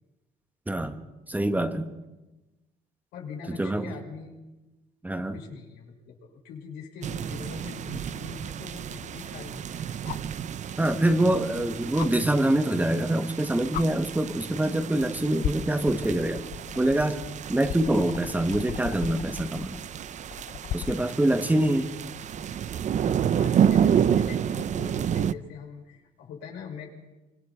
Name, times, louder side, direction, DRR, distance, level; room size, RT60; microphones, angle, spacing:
voice 1, 0.7-1.0 1.3-1.9 3.5-3.9 5.0-5.4 10.8-16.4 16.7-17.2 17.5-19.8 20.7-21.9, right 1 dB, 10° right, 7 dB, 1.6 m, -25 dB
voice 2, 3.1-4.4 5.3-10.0 17.5-17.6 23.0-26.9, left 6 dB, 90° left, 0 dB, 6.2 m, -42 dB
sound 1, 7.0-25.3, right 8 dB, 45° right, 0.6 m, -30 dB
sound 2, 10.0-10.4 12.0-12.1 13.2-13.3 13.7-13.9 14.8-15.1 15.4-21.1 22.7-22.8, left 11 dB, 60° left, 0.7 m, -36 dB
25.5 x 25.5 x 4.5 m, 1.1 s
cardioid pair, 110°, 17 cm